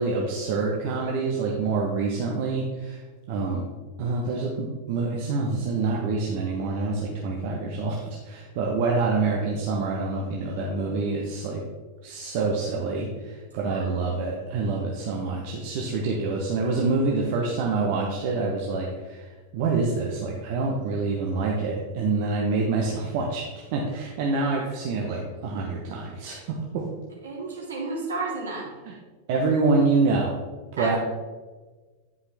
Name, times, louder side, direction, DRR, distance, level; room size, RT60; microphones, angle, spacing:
voice 1, 0.0-3.0 3.3-3.6 4.0-11.6 12.0-19.3 19.5-26.9 28.8-28.9 29.3-30.3 30.8-31.0, right 3 dB, 45° right, -1 dB, 1.0 m, -26 dB
voice 2, 13.7-14.1 27.2-28.7 30.8-31.0, right 3 dB, 65° right, -2 dB, 2.5 m, -32 dB
9.7 x 5.5 x 3.4 m, 1.3 s
figure-of-eight pair, 90°, 0 cm